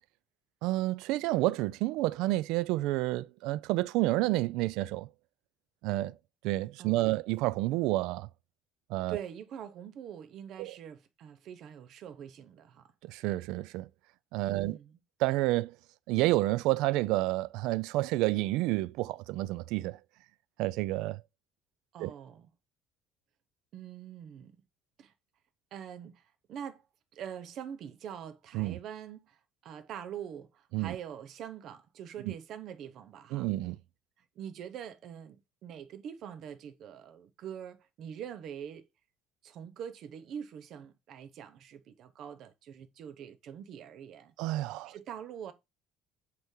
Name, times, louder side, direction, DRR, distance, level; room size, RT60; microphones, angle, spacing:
voice 1, 0.6-5.1 5.8-6.1 6.4-8.3 8.9-9.2 10.6-10.7 13.0-13.9 14.3-14.8 15.2-15.8 16.1-20.0 20.6-21.2 22.0-22.1 28.5-28.8 30.7-31.0 32.3-32.4 33.3-33.8 44.4-45.0, right 18 dB, 70° right, 0.3 m, -29 dB
voice 2, 6.8-7.1 9.1-12.9 14.5-15.0 21.9-22.5 23.7-24.6 25.0-25.1 25.7-26.8 27.1-33.5 34.4-38.9 39.4-44.3 44.8-45.5, right 8 dB, 45° right, 0.7 m, -44 dB
8.1 x 3.1 x 3.7 m
cardioid pair, 175°, 0 cm